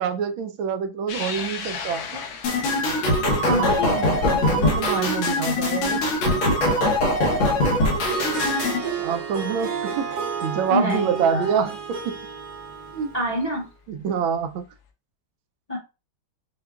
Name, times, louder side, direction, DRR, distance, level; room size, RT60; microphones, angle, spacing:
voice 1, 0.0-2.3 3.4-6.1 7.2-7.4 8.2-8.3 9.0-10.1 10.4-12.2 12.9-13.1 13.9-14.7, right 7 dB, 80° right, 1.4 m, -27 dB
sound 1, 1.1-7.8 8.2-8.3 9.5-9.6 11.8-11.9 13.3-13.6, left 6 dB, 65° left, 1.0 m, -38 dB
sound 2, 2.4-8.8, left 1 dB, 85° left, 1.8 m, -22 dB
voice 2, 3.4-4.0 10.7-11.5 13.1-13.7 15.7-15.8, equal, 30° left, 0.7 m, -26 dB
Harp, 7.9-13.4, right 5 dB, 50° right, 1.4 m, -32 dB
6.8 x 2.3 x 2.3 m
omnidirectional pair, 2.2 m